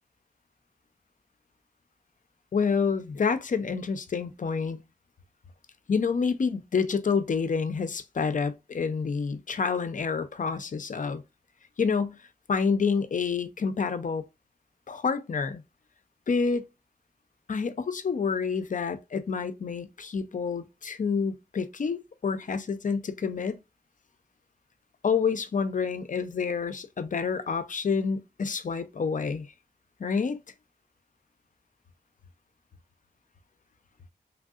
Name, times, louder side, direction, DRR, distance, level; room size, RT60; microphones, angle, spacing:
voice 1, 2.5-4.8 5.9-11.2 11.8-12.2 12.5-14.2 14.9-15.6 16.3-16.7 17.5-23.6 25.0-29.5 30.0-30.4, left 5 dB, 50° left, 0.5 m, -28 dB
3.3 x 2.6 x 2.3 m
wide cardioid pair, 80°, 17 cm